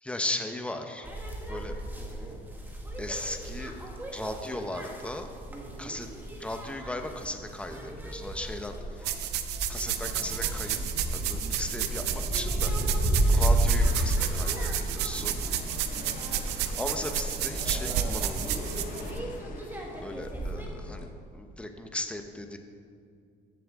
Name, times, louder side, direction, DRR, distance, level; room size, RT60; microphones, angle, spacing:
voice 1, 0.0-1.1 1.5-1.7 3.0-3.7 4.1-5.3 5.8-6.1 6.4-9.1 9.7-10.8 11.1-12.7 13.1-15.4 16.5-18.7 20.0-22.6, left 1 dB, 5° left, 5 dB, 0.8 m, -37 dB
sound 1, 1.0-20.7, right 1 dB, 10° right, 1.6 m, -32 dB
sound 2, 9.1-19.1, right 9 dB, 85° right, 0.7 m, -31 dB
sound 3, 9.9-21.1, left 4 dB, 55° left, 0.9 m, -45 dB
14.5 x 7.3 x 3.6 m, 2.3 s
cardioid pair, 110°, 17 cm